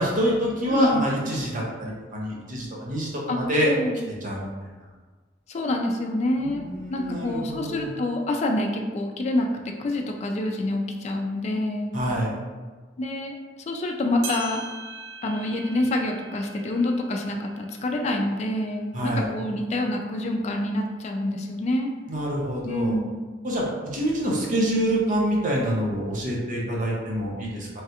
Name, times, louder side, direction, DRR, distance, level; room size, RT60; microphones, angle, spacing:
voice 1, 0.0-3.7 4.1-4.7 6.4-7.9 11.9-12.3 18.9-19.3 22.1-22.9 23.4-27.7, equal, 45° right, -3 dB, 0.7 m, -26 dB
voice 2, 0.7-1.1 3.3-3.4 3.6-4.1 5.5-9.5 9.8-11.9 13.0-14.6 15.2-21.9 22.6-23.2, left 1 dB, 40° left, 2 dB, 0.3 m, -27 dB
sound 1, 14.2-18.9 19.4-19.5 20.3-20.4 21.3-21.4, right 4 dB, 85° right, 0.5 m, -41 dB
3.1 x 2.4 x 2.8 m, 1.4 s
head